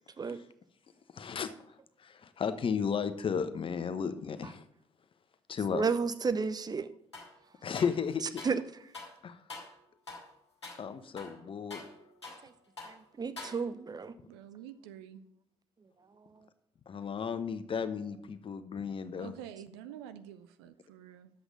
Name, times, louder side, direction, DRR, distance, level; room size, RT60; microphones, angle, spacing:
voice 1, 1.1-4.6 5.5-5.8 7.6-8.6 9.2-9.4 10.8-11.8 16.9-19.3, left 6 dB, 40° left, 11 dB, 0.9 m, -34 dB
voice 2, 5.7-6.9 8.4-8.6 12.8-14.1, right 5 dB, 30° right, 13 dB, 0.7 m, -32 dB
sound 1, 7.1-7.4 7.7-8.6 8.9-9.2 9.5-9.8 10.1-10.3 10.6-10.8 11.2-12.5 12.8-13.0 13.4-13.9, left 3 dB, 85° left, 1.1 m, -46 dB
voice 3, 14.3-15.2 19.2-21.3, right 10 dB, 70° right, 11 dB, 0.6 m, -48 dB
10.5 x 7.9 x 3.8 m, 0.73 s
figure-of-eight pair, 40°, 14 cm